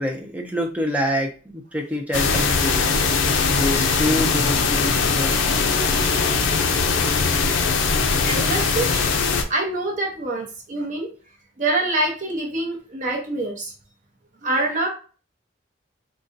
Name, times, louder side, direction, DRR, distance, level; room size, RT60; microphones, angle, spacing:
voice 1, 0.0-2.7 3.5-5.4, equal, 10° right, 2 dB, 0.5 m, -26 dB
sound 1, 2.1-9.4, left 4 dB, 80° left, 0.5 m, -20 dB
voice 2, 8.2-9.1 9.5-11.1 11.6-13.7 14.4-14.9, right 2 dB, 40° right, 0 dB, 0.8 m, -25 dB
3.8 x 2.3 x 2.6 m, 0.37 s
head